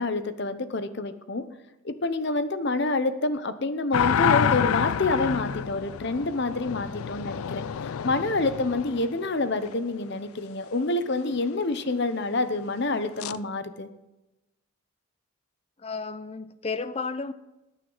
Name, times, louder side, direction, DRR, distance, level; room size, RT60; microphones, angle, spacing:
voice 1, 0.0-1.5 1.8-13.9, left 2 dB, 50° left, 11 dB, 0.8 m, -27 dB
sound 1, 3.9-9.7 13.2-13.4, left 8 dB, 80° left, 0.4 m, -28 dB
voice 2, 15.8-17.3, left 4 dB, 30° left, 13 dB, 0.5 m, -32 dB
20.5 x 9.2 x 4.0 m, 0.96 s
head